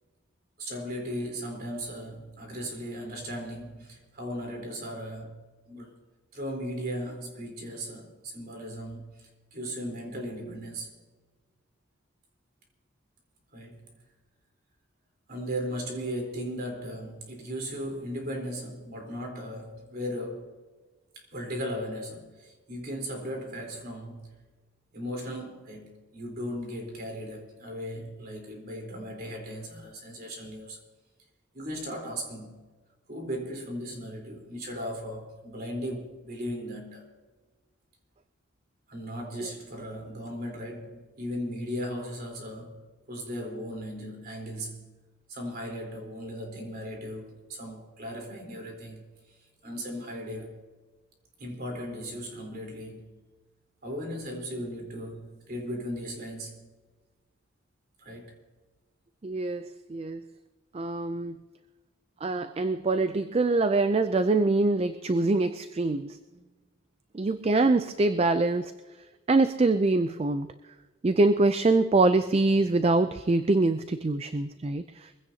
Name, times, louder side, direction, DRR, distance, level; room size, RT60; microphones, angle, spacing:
voice 1, 0.6-5.9 6.3-10.9 13.5-13.9 15.3-20.6 21.2-24.4 24.9-30.8 31.5-32.6 33.1-37.1 38.9-44.9 45.3-49.1 49.6-50.6 51.4-53.2 53.8-56.7 58.0-58.4, equal, 45° right, 3.9 m, -37 dB
voice 2, 59.2-60.2 60.7-61.4 62.2-66.2 67.1-68.7 69.3-70.5 71.0-75.2, right 3 dB, 30° right, 0.4 m, -24 dB
23.5 x 16.0 x 2.8 m
head